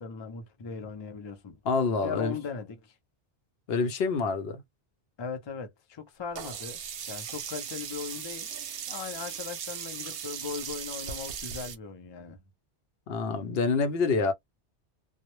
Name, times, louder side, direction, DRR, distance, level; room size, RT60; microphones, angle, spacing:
voice 1, 0.0-1.6 2.0-2.9 5.2-6.8 7.1-8.5 8.9-12.4, left 5 dB, 45° left, 0.3 m, -38 dB
voice 2, 1.7-2.4 3.7-4.6 13.1-14.3, left 4 dB, 65° left, 0.7 m, -27 dB
Sink (filling or washing), 6.4-11.8, right 8 dB, 65° right, 0.7 m, -38 dB
2.0 x 2.0 x 2.9 m
omnidirectional pair, 1.2 m